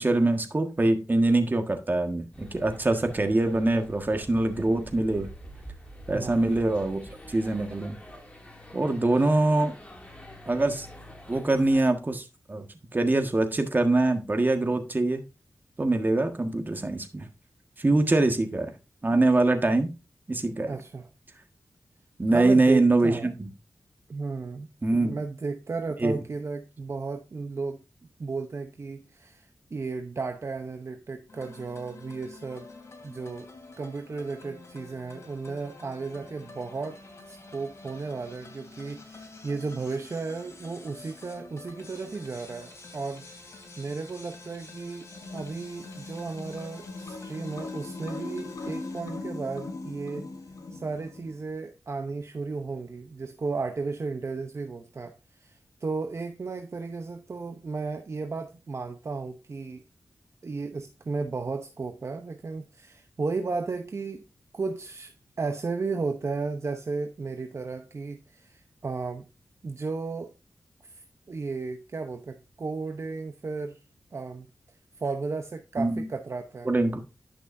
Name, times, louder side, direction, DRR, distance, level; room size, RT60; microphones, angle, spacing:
voice 1, 0.0-5.3 6.1-7.0 7.3-8.0 8.7-9.7 10.4-10.9 11.3-12.6 12.9-15.2 15.8-17.3 17.8-18.7 19.0-19.9 20.3-20.7 22.2-23.5 24.8-25.2 26.0-26.2 75.8-76.1 76.6-77.0, right 2 dB, 35° right, 1.6 m, -24 dB
sound 1, 2.3-11.8, equal, 20° left, 2.5 m, -46 dB
voice 2, 20.7-21.1 22.3-23.4 24.1-24.7 25.1-27.8 28.2-32.7 33.0-33.5 33.8-37.0 37.3-50.3 50.7-59.8 60.4-64.3 64.5-69.3 69.6-70.3 70.8-73.8 74.1-74.5 75.0-76.7, right 4 dB, 50° right, 0.8 m, -34 dB
sound 2, 31.3-49.0, left 2 dB, 50° left, 3.1 m, -48 dB
sound 3, 45.1-51.4, left 3 dB, 75° left, 1.7 m, -40 dB
11.0 x 6.1 x 2.6 m
cardioid pair, 65°, 6 cm